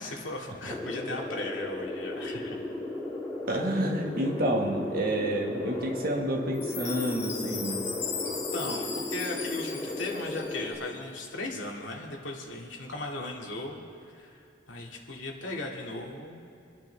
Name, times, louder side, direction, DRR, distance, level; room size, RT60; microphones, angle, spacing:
voice 1, 0.0-2.6 8.2-13.8 14.1-16.4, left 2 dB, 85° left, 0 dB, 2.2 m, -37 dB
sound 1, 0.7-10.7, left 2 dB, 5° left, 2.9 m, -36 dB
voice 2, 3.5-7.9, right 1 dB, 50° right, 1 dB, 1.6 m, -29 dB
Guitar, 4.2-10.7, left 2 dB, 35° left, 1.9 m, -49 dB
Chime, 6.5-10.8, left 5 dB, 65° left, 2.3 m, -37 dB
27.0 x 10.5 x 3.4 m, 2.6 s
head